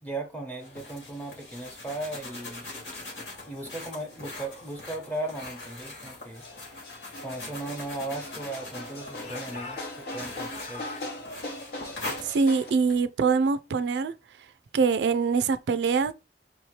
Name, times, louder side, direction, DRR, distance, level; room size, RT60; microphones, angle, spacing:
voice 1, 0.0-2.7 3.5-6.4 7.2-11.0, right 2 dB, 10° left, 0.9 m, -37 dB
sound 1, 0.6-13.0, left 2 dB, 85° left, 2.4 m, -43 dB
sound 2, 2.1-12.7, left 1 dB, 65° left, 1.0 m, -42 dB
Speech / Shout, 7.2-8.8 9.2-11.1, left 3 dB, 40° left, 0.6 m, -44 dB
voice 2, 12.2-14.1 14.7-16.1, right 5 dB, 75° right, 0.3 m, -24 dB
4.5 x 2.8 x 3.1 m
head